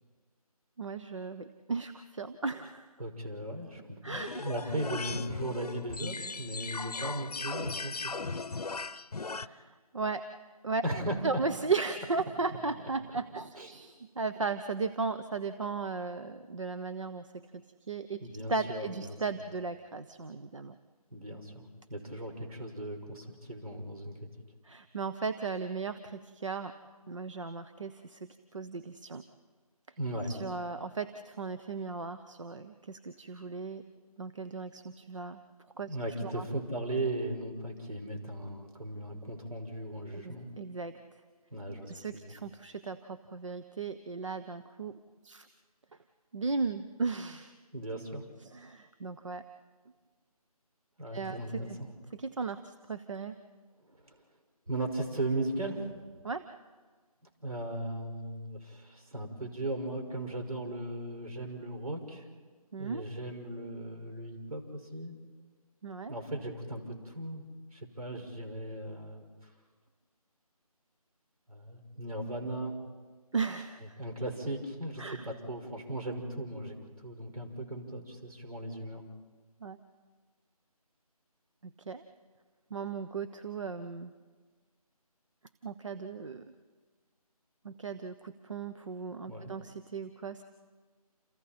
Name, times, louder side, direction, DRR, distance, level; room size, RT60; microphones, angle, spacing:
voice 1, 0.8-2.9 4.0-4.4 9.3-10.2 10.6-10.8 11.2-18.2 18.5-20.7 24.6-26.7 27.1-29.2 29.9-30.0 30.3-33.8 34.2-35.4 35.8-35.9 36.2-36.5 40.1-41.0 41.9-45.5 46.3-47.5 48.4-49.4 51.1-51.4 51.7-51.8 52.1-53.4 56.2-56.4 62.7-63.0 65.8-66.1 73.3-74.0 75.0-75.3 79.6-79.8 81.6-82.0 82.7-84.1 85.6-86.5 87.6-90.4, right 4 dB, 55° right, 10 dB, 1.0 m, -36 dB
voice 2, 3.0-4.1 4.4-8.3 10.8-11.4 13.6-13.7 18.2-19.2 21.1-24.3 30.0-30.3 35.9-40.5 41.5-42.4 47.7-48.3 51.0-51.9 53.9-54.2 54.7-55.9 57.4-62.2 62.8-65.2 66.1-67.4 67.7-69.2 71.5-72.7 74.0-79.0 89.3-89.5, right 1 dB, 70° right, 4 dB, 5.6 m, -37 dB
sound 1, 4.1-9.5, left 4 dB, 80° left, 0.9 m, -38 dB
29.0 x 28.5 x 4.4 m, 1.5 s
figure-of-eight pair, 165°, 19 cm